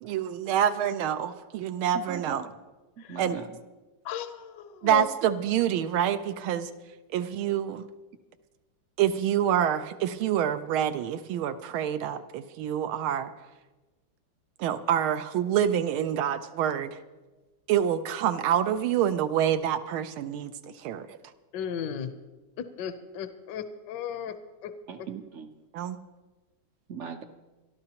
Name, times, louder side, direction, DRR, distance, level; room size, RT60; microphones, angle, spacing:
voice 1, 0.0-2.4 3.2-3.4 4.8-6.7 7.1-7.9 9.0-13.3 14.6-17.0 17.7-21.2 25.7-26.0, right 10 dB, 85° right, 9 dB, 1.5 m, -27 dB
voice 2, 1.9-2.5 3.0-3.5 24.9-25.5 26.9-27.2, right 7 dB, 60° right, 7 dB, 0.7 m, -39 dB
voice 3, 4.0-5.1 21.5-22.1 22.6-24.7, left 7 dB, 70° left, 9 dB, 1.2 m, -35 dB
24.5 x 12.5 x 2.9 m, 1.2 s
omnidirectional pair, 2.2 m